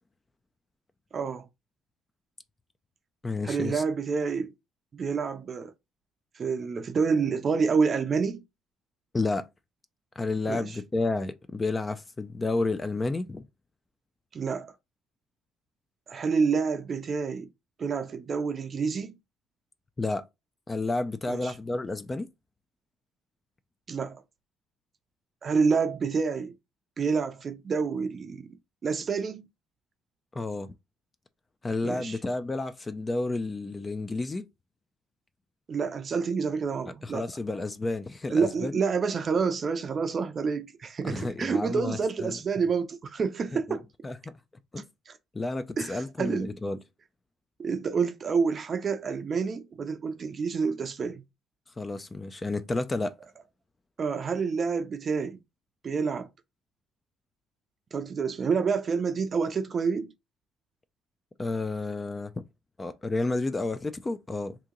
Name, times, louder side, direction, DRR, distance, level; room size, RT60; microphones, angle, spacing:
voice 1, 1.1-1.5 3.4-4.5 4.9-5.7 6.4-8.4 10.5-10.8 14.3-14.7 16.1-17.5 17.8-19.2 21.3-21.5 23.9-24.2 25.4-26.5 27.0-28.5 28.8-29.4 31.8-32.2 35.7-37.3 38.3-43.8 45.1-45.2 45.8-46.5 47.6-51.2 54.0-55.4 55.8-56.3 57.9-60.1, right 5 dB, 40° right, 0.5 m, -28 dB
voice 2, 3.2-3.8 9.1-9.4 10.2-13.4 20.0-20.2 20.7-22.3 30.3-30.7 31.6-34.4 37.0-38.8 41.0-42.4 43.5-43.8 44.0-44.2 44.7-44.8 45.3-46.8 51.8-53.1 61.4-62.4 62.8-64.6, left 2 dB, 20° left, 0.3 m, -31 dB
2.9 x 2.6 x 3.7 m
cardioid pair, 100°, 0 cm